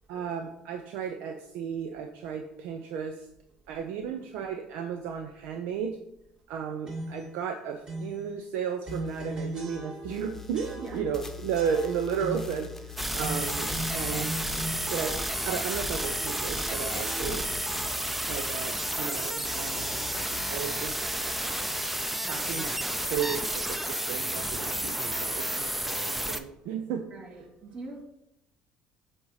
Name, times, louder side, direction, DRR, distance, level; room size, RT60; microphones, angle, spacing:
voice 1, 0.1-3.3 3.7-6.0 6.5-17.5 18.3-19.9 20.5-21.0 21.3-21.4 22.2-27.1, right 7 dB, 80° right, 0.5 m, -34 dB
sound 1, 6.9-7.3 7.9-8.2 8.8-10.2 10.5-11.2 11.5-12.6 13.2-15.6 15.9-17.8, right 1 dB, 35° right, 1.8 m, -39 dB
sound 2, 8.9-9.8 10.0-16.6 16.9-19.2 19.5-20.5, left 6 dB, 15° left, 0.9 m, -45 dB
sound 3, 13.0-26.4, right 1 dB, 5° right, 0.5 m, -31 dB
voice 2, 21.3-22.4 27.1-28.0, right 2 dB, 50° right, 1.9 m, -47 dB
7.6 x 2.8 x 4.8 m
supercardioid pair, 85°, 3 cm